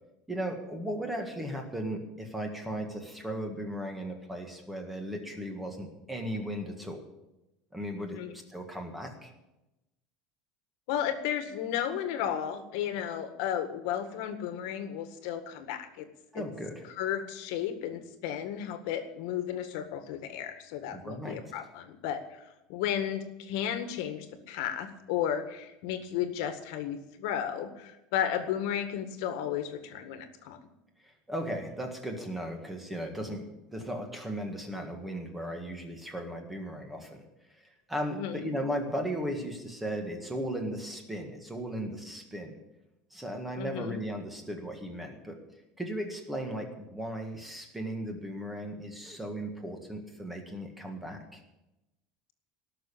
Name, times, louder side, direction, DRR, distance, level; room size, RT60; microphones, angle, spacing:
voice 1, 0.3-7.0 7.7-9.3 16.3-16.9 20.9-21.4 31.0-37.2 37.5-42.6 43.1-45.4 45.8-51.4, equal, 5° right, 3 dB, 1.7 m, -36 dB
voice 2, 10.9-16.1 16.3-16.4 17.0-30.6 38.1-38.5 43.6-44.0, left 9 dB, 60° left, 8 dB, 1.8 m, -33 dB
18.5 x 6.6 x 8.6 m, 0.95 s
cardioid pair, 175°, 2 cm